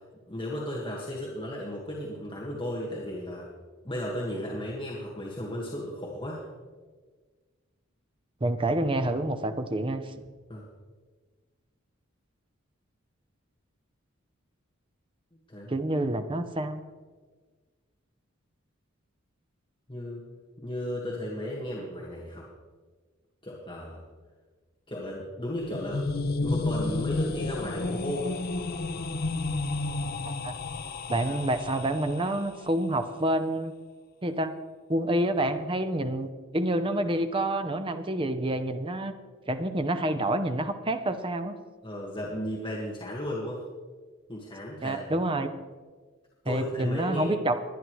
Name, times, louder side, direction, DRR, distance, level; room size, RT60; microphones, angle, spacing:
voice 1, 0.3-3.5 3.8-6.4 10.5-10.6 15.5-15.7 19.9-20.2 20.6-22.5 23.4-24.0 24.9-26.0 26.4-28.4 31.2-31.3 41.8-43.6 44.3-45.0 46.5-47.4, left 1 dB, 25° left, -5 dB, 1.7 m, -35 dB
voice 2, 8.4-10.0 15.7-16.8 30.4-30.5 31.1-33.7 34.2-34.5 34.9-39.1 39.5-41.6 44.8-45.5 46.5-47.6, right 1 dB, 25° right, 8 dB, 0.7 m, -28 dB
sound 1, 25.4-32.4, left 2 dB, 45° left, 0.6 m, -31 dB
22.0 x 9.7 x 3.2 m, 1.4 s
head